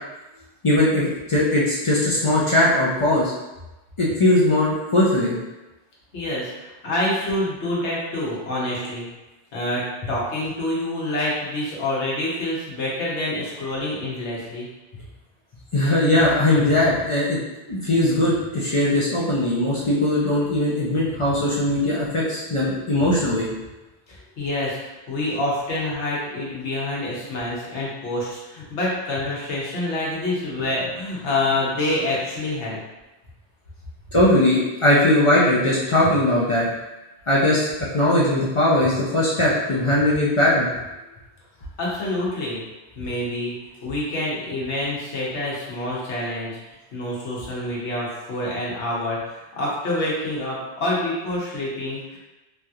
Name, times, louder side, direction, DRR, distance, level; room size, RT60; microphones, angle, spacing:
voice 1, 0.6-3.3 4.0-5.4 15.7-17.4 17.7-23.5 34.1-36.7 37.3-37.7 37.9-41.0, left 1 dB, 45° left, -6 dB, 0.4 m, -20 dB
voice 2, 6.1-9.1 9.5-14.7 24.1-32.8 41.8-42.6 43.0-43.5 43.8-52.2, left 1 dB, 85° left, -5 dB, 1.2 m, -27 dB
3.2 x 2.7 x 2.3 m, 1.1 s
omnidirectional pair, 1.1 m